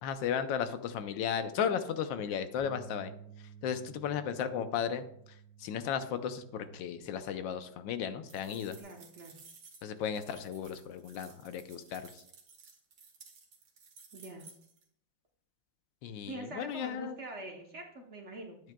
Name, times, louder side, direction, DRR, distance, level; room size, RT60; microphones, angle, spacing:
voice 1, 0.0-3.1 3.6-5.0 5.6-8.8 9.8-12.2 16.0-17.2, left 8 dB, 85° left, 10 dB, 1.4 m, -35 dB
Bass guitar, 2.6-8.8, right 7 dB, 55° left, 2.7 m, -55 dB
sound 1, 8.3-14.8, right 4 dB, 80° right, 2.0 m, -56 dB
voice 2, 8.8-9.4 14.1-14.5 16.3-18.6, right 2 dB, 50° right, 2 dB, 1.0 m, -44 dB
9.5 x 8.6 x 2.2 m, 0.70 s
omnidirectional pair, 2.0 m